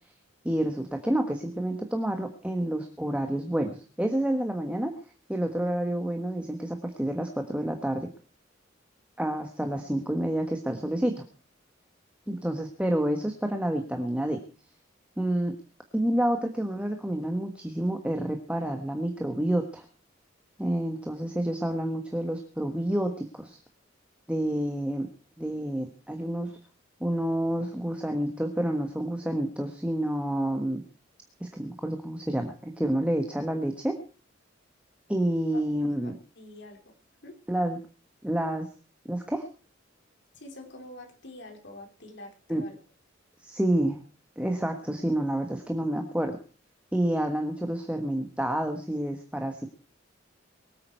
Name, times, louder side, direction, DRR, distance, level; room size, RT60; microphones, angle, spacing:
voice 1, 0.4-4.9 5.3-8.1 9.2-11.2 12.3-14.4 15.2-15.5 15.9-19.8 20.6-23.6 24.3-25.1 25.4-26.6 27.0-30.8 31.4-34.0 35.1-36.2 37.5-37.8 38.2-38.7 39.1-39.4 42.5-42.6 43.4-44.0 44.4-46.4 46.9-49.7, right 1 dB, 5° right, 4 dB, 1.3 m, -29 dB
voice 2, 35.7-36.9 37.2-37.3 40.3-42.8, left 1 dB, 60° left, 4 dB, 3.4 m, -46 dB
23.5 x 8.9 x 4.5 m, 0.37 s
head